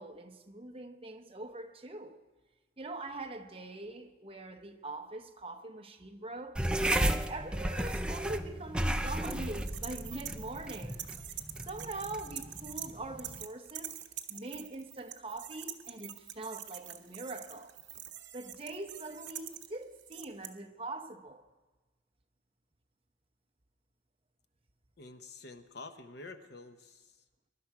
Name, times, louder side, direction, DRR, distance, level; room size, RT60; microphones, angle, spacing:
voice 1, 0.0-2.2 2.8-6.6 7.0-14.0 14.3-17.7 18.3-21.4, right 2 dB, 30° right, 0.8 m, -43 dB
sound 1, 6.5-13.4, right 1 dB, 5° right, 0.4 m, -34 dB
sound 2, 9.2-12.9 13.2-20.5, right 12 dB, 65° right, 0.9 m, -45 dB
voice 2, 25.0-27.2, left 3 dB, 55° left, 0.9 m, -48 dB
23.0 x 11.5 x 4.7 m
head